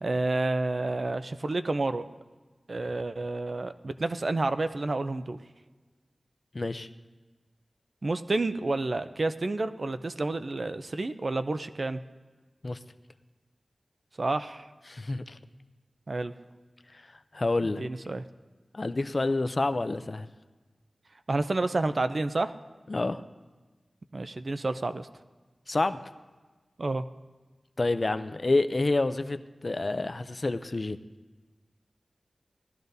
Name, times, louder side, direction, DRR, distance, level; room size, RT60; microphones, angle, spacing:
voice 1, 0.0-2.0 2.7-5.4 8.0-12.0 14.2-14.6 16.1-16.3 17.8-18.2 21.3-22.5 24.1-25.1 26.8-27.0, right 2 dB, 50° right, 10 dB, 0.5 m, -29 dB
voice 2, 6.5-6.9 12.6-12.8 14.9-15.4 17.3-17.8 18.7-20.3 22.9-23.2 25.7-26.0 27.8-31.0, left 2 dB, 45° left, 11 dB, 0.4 m, -28 dB
18.5 x 12.5 x 2.7 m, 1.3 s
wide cardioid pair, 90°, 0 cm